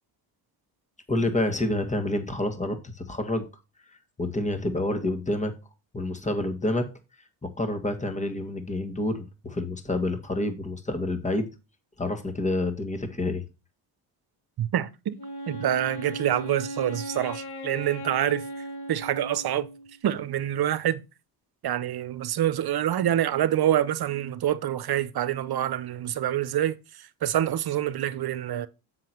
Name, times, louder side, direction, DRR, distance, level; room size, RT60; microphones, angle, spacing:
voice 1, 1.1-3.5 4.2-5.6 5.9-6.9 7.4-11.5 12.0-13.4, left 2 dB, 15° left, 1.9 m, -28 dB
voice 2, 14.6-15.2 15.5-18.4 18.9-19.7 20.0-21.0 21.6-28.7, right 11 dB, 50° right, 0.9 m, -26 dB
Wind instrument woodwind instrument, 15.2-20.0, right 1 dB, 55° left, 1.6 m, -37 dB
7.5 x 6.1 x 4.5 m
supercardioid pair, 55°, 47 cm